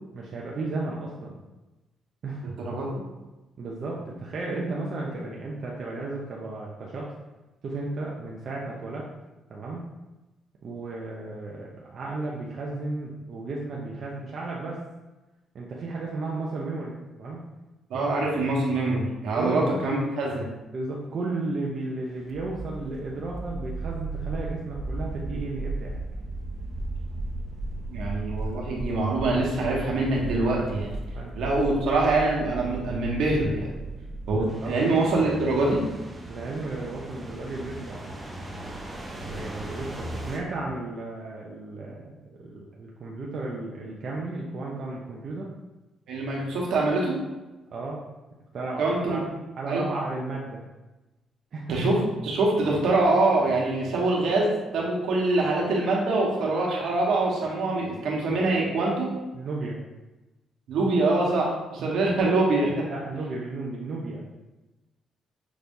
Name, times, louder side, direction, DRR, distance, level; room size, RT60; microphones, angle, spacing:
voice 1, 0.1-1.4 2.2-2.5 3.6-7.1 7.6-9.0 9.5-9.8 10.6-14.8 15.5-17.4 17.9-18.1 19.3-19.6 20.7-26.0 31.1-31.6 34.3-34.7 36.3-38.3 39.2-42.1 42.4-45.5 47.7-48.0 48.5-49.2 49.6-50.6 51.5-51.7 59.3-59.8 61.8-62.1 62.9-64.2, right 2 dB, 55° right, -3 dB, 0.7 m, -34 dB
voice 2, 2.6-3.0 17.9-20.5 27.9-31.0 31.3-33.7 34.3-35.8 46.1-47.2 48.8-49.2 49.7-49.9 51.7-59.2 60.7-62.8, right 2 dB, 80° right, -3 dB, 1.3 m, -24 dB
sound 1, 22.2-40.4, right 2 dB, 15° right, 0.9 m, -36 dB
6.0 x 3.3 x 2.7 m, 1.1 s
cardioid pair, 90°, 0 cm